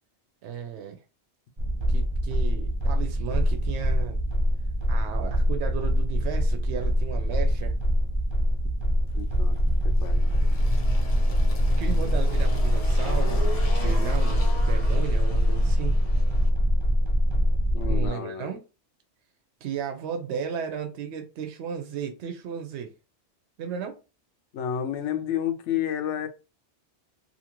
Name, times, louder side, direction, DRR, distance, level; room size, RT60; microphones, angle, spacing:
voice 1, 0.4-1.0 1.9-4.2 4.9-7.7 11.8-16.0 17.8-18.6 19.6-22.9 23.6-24.0, right 7 dB, 75° right, 0.8 m, -34 dB
Drum Test, 1.6-18.1, equal, 40° right, 0.4 m, -23 dB
voice 2, 9.1-9.6 9.8-10.3 17.7-18.5 24.5-26.3, left 10 dB, 90° left, 0.9 m, -30 dB
Engine, 9.1-16.5, left 3 dB, 40° left, 0.6 m, -39 dB
2.7 x 2.5 x 2.8 m
omnidirectional pair, 1.2 m